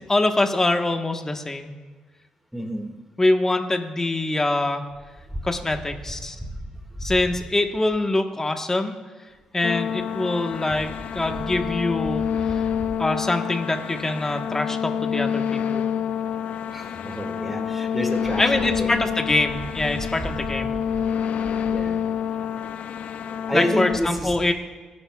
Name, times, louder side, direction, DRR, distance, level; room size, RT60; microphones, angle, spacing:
voice 1, 0.1-1.7 3.2-4.9 5.4-6.4 7.0-9.0 9.5-10.9 11.1-12.6 13.0-15.8 18.4-20.7 23.5-24.5, left 2 dB, 20° left, 5 dB, 1.3 m, -24 dB
voice 2, 2.5-2.9 7.8-7.9 16.7-19.1 21.6-22.0 23.5-24.4, equal, 5° right, 3 dB, 2.0 m, -29 dB
sound 1, 9.6-24.0, left 8 dB, 65° left, 0.5 m, -28 dB
27.5 x 10.5 x 2.4 m, 1.4 s
cardioid pair, 90°, 2 cm